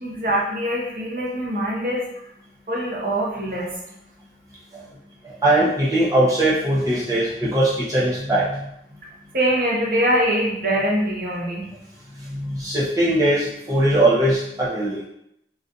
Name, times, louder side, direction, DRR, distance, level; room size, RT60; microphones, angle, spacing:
voice 1, 0.0-2.1 2.7-3.7 9.3-11.6, equal, 50° right, -4 dB, 0.8 m, -23 dB
voice 2, 5.2-8.7 12.1-15.0, right 1 dB, 20° right, -9 dB, 0.7 m, -20 dB
3.7 x 2.4 x 2.6 m, 0.78 s
head